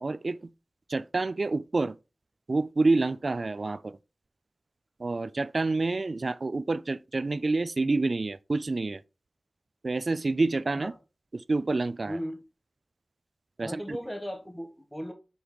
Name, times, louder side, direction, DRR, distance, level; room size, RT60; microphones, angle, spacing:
voice 1, 0.0-0.5 0.9-2.0 2.5-4.0 5.0-9.0 9.8-10.9 11.3-12.2 13.6-14.0, right 3 dB, 55° right, 0.3 m, -28 dB
voice 2, 12.1-12.4 13.6-15.1, equal, 5° left, 1.0 m, -36 dB
6.1 x 5.2 x 3.0 m
wide cardioid pair, 80°, 0 cm